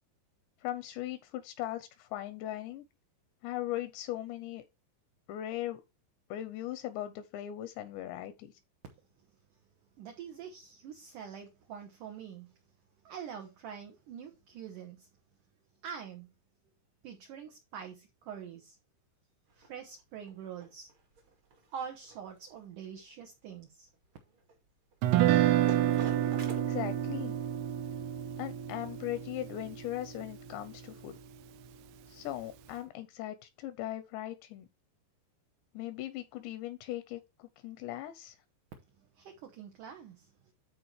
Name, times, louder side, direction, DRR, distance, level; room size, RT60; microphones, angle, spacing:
voice 1, 0.6-2.8 3.4-4.6 5.3-5.8 6.3-8.5 26.5-27.4 28.4-31.2 32.1-34.7 35.7-38.4, left 13 dB, 80° left, 2.7 m, -39 dB
voice 2, 10.0-12.5 13.0-15.1 15.8-16.3 17.0-18.8 19.6-20.9 21.7-23.9 39.2-40.3, right 7 dB, 75° right, 1.9 m, -45 dB
sound 1, 19.5-26.5, right 3 dB, 45° right, 1.6 m, -50 dB
Guitar, 25.0-31.1, right 12 dB, 90° right, 3.1 m, -29 dB
13.0 x 4.4 x 3.2 m
omnidirectional pair, 5.4 m